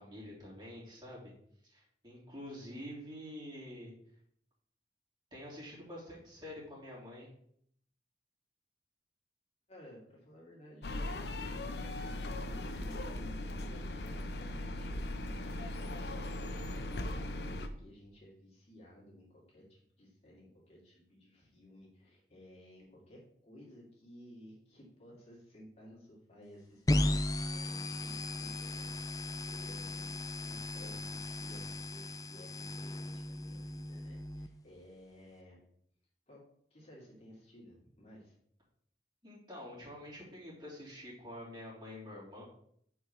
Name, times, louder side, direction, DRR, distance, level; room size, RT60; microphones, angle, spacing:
voice 1, 0.0-1.3 1.6-3.9 5.3-7.3 39.2-42.4, left 1 dB, 25° right, -6 dB, 3.2 m, -47 dB
voice 2, 9.7-35.6 36.3-36.4 36.7-38.3, equal, 35° left, -4 dB, 2.5 m, -56 dB
sound 1, 10.8-17.7, left 1 dB, 70° left, 0.8 m, -39 dB
sound 2, 26.9-34.5, left 1 dB, 20° left, 0.4 m, -36 dB
6.9 x 4.7 x 6.6 m, 0.67 s
head